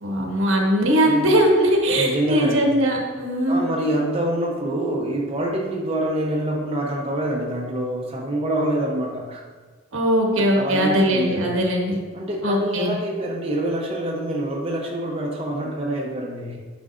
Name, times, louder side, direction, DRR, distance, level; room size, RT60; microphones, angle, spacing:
voice 1, 0.0-3.9 9.9-12.0 12.4-12.9, equal, 80° right, 0 dB, 1.5 m, -20 dB
voice 2, 1.9-2.7 3.5-9.4 10.6-11.4 12.1-16.6, right 1 dB, 30° right, -2 dB, 0.8 m, -26 dB
9.7 x 5.4 x 2.6 m, 1.4 s
head